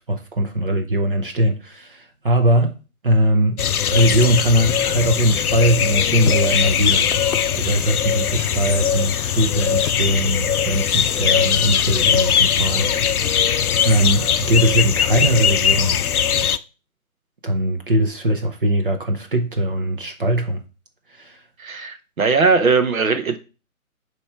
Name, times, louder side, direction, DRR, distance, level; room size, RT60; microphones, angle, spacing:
voice 1, 0.1-2.8 3.0-3.6 3.9-7.1 7.6-16.0 17.4-20.6 21.1-21.4, right 1 dB, 40° right, 0.7 m, -20 dB
sound 1, 3.6-16.6, left 8 dB, 75° left, 0.6 m, -20 dB
voice 2, 21.6-23.4, right 4 dB, 65° right, 1.2 m, -19 dB
8.1 x 3.2 x 4.6 m
figure-of-eight pair, 150°, 44 cm